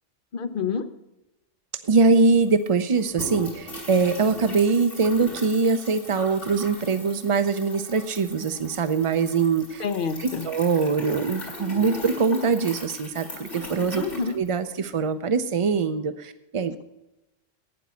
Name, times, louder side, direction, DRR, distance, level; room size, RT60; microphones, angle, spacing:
voice 1, 0.3-0.9 9.8-10.5 14.0-14.4, left 5 dB, 50° left, 9 dB, 0.9 m, -28 dB
voice 2, 1.8-9.8 10.2-14.0 14.3-16.8, right 4 dB, 55° right, 10 dB, 0.3 m, -23 dB
sound 1, 1.9-15.0, left 1 dB, 70° left, 3.8 m, -39 dB
12.0 x 9.3 x 5.6 m, 0.94 s
omnidirectional pair, 1.3 m